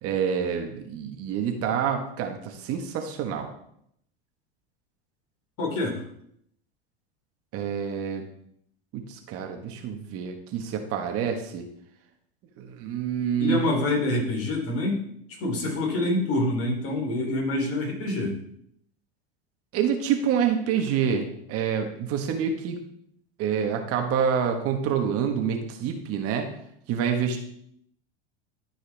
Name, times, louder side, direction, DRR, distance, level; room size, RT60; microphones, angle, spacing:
voice 1, 0.0-3.5 7.5-8.3 8.9-11.7 12.6-13.6 19.7-22.8 23.4-26.5 26.9-27.4, right 7 dB, 50° right, 4 dB, 1.5 m, -27 dB
voice 2, 5.6-6.0 13.4-15.0 15.4-18.4, left 2 dB, 50° left, -1 dB, 3.3 m, -26 dB
13.0 x 4.6 x 3.5 m, 0.71 s
hypercardioid pair, 100°, 30 cm